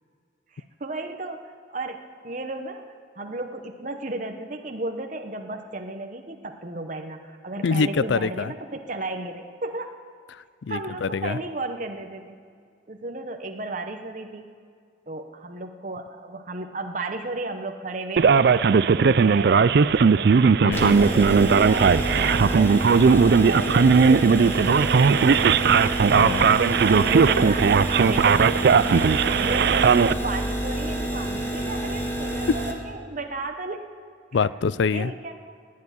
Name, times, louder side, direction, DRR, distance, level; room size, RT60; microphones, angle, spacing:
voice 1, 0.5-1.4 1.7-2.8 3.2-9.9 10.7-12.4 12.9-14.5 15.1-20.3 20.8-22.8 23.2-26.0 26.8-28.7 29.3-33.9 34.9-35.5, right 2 dB, 45° right, 5 dB, 0.9 m, -34 dB
voice 2, 7.6-8.5 10.6-11.4 20.6-21.0 26.2-26.6 34.3-35.1, left 5 dB, 80° left, 17 dB, 0.4 m, -25 dB
Male speech man speaking, 18.2-30.1, right 5 dB, 60° right, 0.4 m, -18 dB
sound 1, 20.7-32.7, right 1 dB, 15° left, 1.6 m, -28 dB
15.0 x 9.6 x 9.8 m, 2.2 s
head